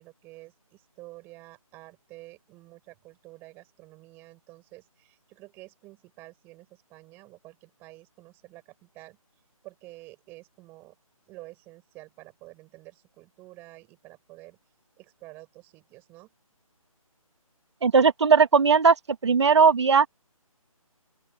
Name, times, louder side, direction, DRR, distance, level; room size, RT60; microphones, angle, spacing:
voice 1, 0.0-9.2 9.6-10.9 11.3-14.6 15.0-16.3, right 20 dB, 10° right, 7.8 m, -49 dB
voice 2, 17.8-19.0 19.2-20.1, right 5 dB, 50° right, 2.3 m, -18 dB
open air
hypercardioid pair, 170°, 18 cm